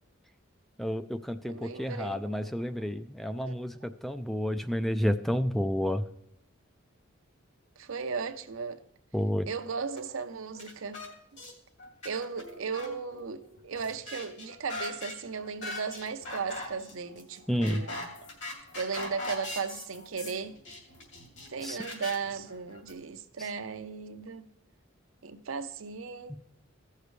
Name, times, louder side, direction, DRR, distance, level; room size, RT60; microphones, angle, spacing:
voice 1, 0.8-6.0 9.1-9.5 17.5-17.8 21.6-21.8 23.4-23.5 26.3-26.4, equal, ahead, 0.3 m, -30 dB
voice 2, 1.4-2.2 2.8-2.9 3.4-3.5 7.8-8.8 9.5-11.0 12.0-18.1 18.7-20.6 21.5-24.4 25.2-26.4, right 5 dB, 80° right, 0.7 m, -36 dB
sound 1, 10.0-10.1 10.5-11.1 11.4-11.5 11.8-22.9, left 2 dB, 60° left, 2.7 m, -41 dB
16.0 x 6.6 x 3.2 m
head